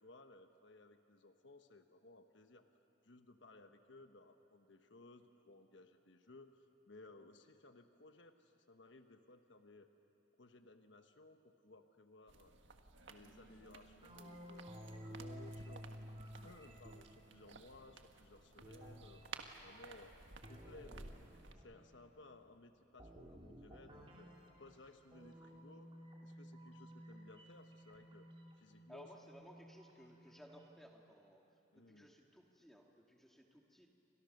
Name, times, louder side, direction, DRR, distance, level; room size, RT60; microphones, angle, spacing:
voice 1, 0.0-2.7 3.0-9.9 10.4-12.6 13.0-15.9 16.4-20.1 20.5-21.2 21.5-24.3 24.6-25.9 26.2-28.3 28.6-29.1 31.7-32.2, left 2 dB, 75° left, 7 dB, 1.2 m, -60 dB
sound 1, 12.3-21.5, right 4 dB, 85° right, 1.6 m, -56 dB
sound 2, 13.2-18.0 18.6-22.4 23.0-30.7, equal, 30° right, 2.5 m, -55 dB
voice 2, 28.9-33.9, equal, ahead, 1 dB, 1.8 m, -60 dB
29.5 x 26.0 x 6.6 m, 2.8 s
head